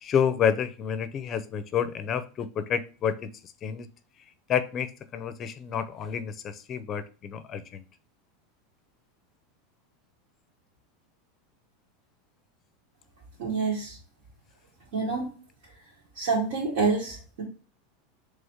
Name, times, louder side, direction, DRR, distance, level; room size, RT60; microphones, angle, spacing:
voice 1, 0.0-3.3 3.6-3.9 4.5-7.8, left 8 dB, 30° left, 13 dB, 0.5 m, -29 dB
voice 2, 13.4-14.0 14.9-15.3 16.1-17.4, right 4 dB, 75° right, -5 dB, 1.8 m, -27 dB
3.5 x 3.3 x 4.1 m, 0.36 s
supercardioid pair, 130°, 0 cm